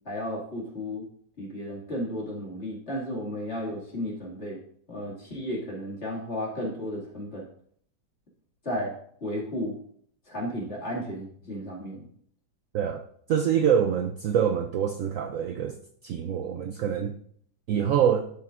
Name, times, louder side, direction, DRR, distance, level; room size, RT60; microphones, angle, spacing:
voice 1, 0.1-1.0 1.4-4.6 4.9-7.5 8.6-8.9 9.2-9.8 10.3-12.1, equal, 35° left, -3 dB, 2.5 m, -33 dB
voice 2, 12.7-15.7 16.0-17.1 17.7-18.2, right 8 dB, 80° right, 6 dB, 0.7 m, -25 dB
12.0 x 7.7 x 2.5 m, 0.62 s
omnidirectional pair, 2.0 m